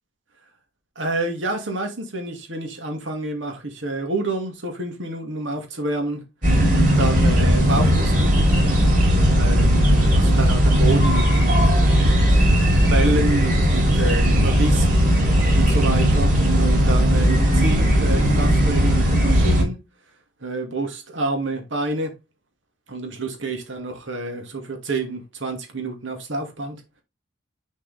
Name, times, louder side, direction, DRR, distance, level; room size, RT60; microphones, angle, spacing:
voice 1, 1.0-6.2 7.0-8.4 9.3-11.5 12.9-15.0 15.5-19.8 20.4-22.2 22.9-26.8, right 2 dB, 90° right, 2.3 m, -28 dB
sound 1, 6.4-19.6, equal, 45° right, 3.2 m, -17 dB
6.7 x 5.4 x 3.6 m
head